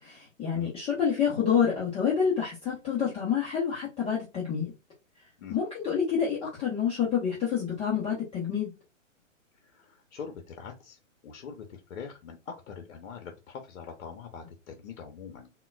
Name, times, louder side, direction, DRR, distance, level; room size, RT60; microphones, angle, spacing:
voice 1, 0.0-4.7 5.5-8.7, left 7 dB, 15° left, -6 dB, 0.6 m, -28 dB
voice 2, 9.6-15.5, left 6 dB, 60° left, 4 dB, 0.7 m, -43 dB
3.7 x 2.1 x 2.2 m, 0.27 s
hypercardioid pair, 130°, 39 cm